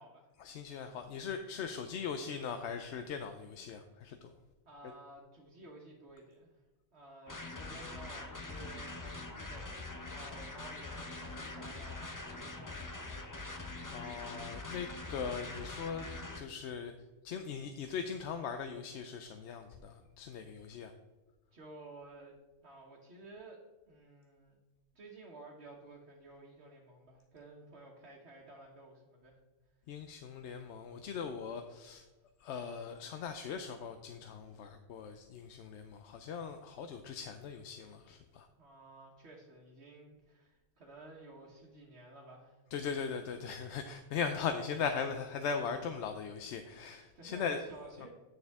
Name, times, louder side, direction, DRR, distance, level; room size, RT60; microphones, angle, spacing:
voice 1, 0.4-4.3 13.9-16.1 16.4-16.9 17.2-20.9 29.9-32.0 32.4-38.5 42.7-47.6 48.0-48.1, left 6 dB, 85° left, 7 dB, 0.9 m, -39 dB
voice 2, 4.7-6.6 6.9-13.2 21.5-22.3 22.6-23.6 23.9-24.6 24.9-29.4 38.6-42.6 47.1-48.1, right 2 dB, 70° right, -3 dB, 1.5 m, -54 dB
sound 1, 7.3-16.4, left 2 dB, 20° left, 0.6 m, -44 dB
9.3 x 6.6 x 3.5 m, 1.2 s
omnidirectional pair, 1.1 m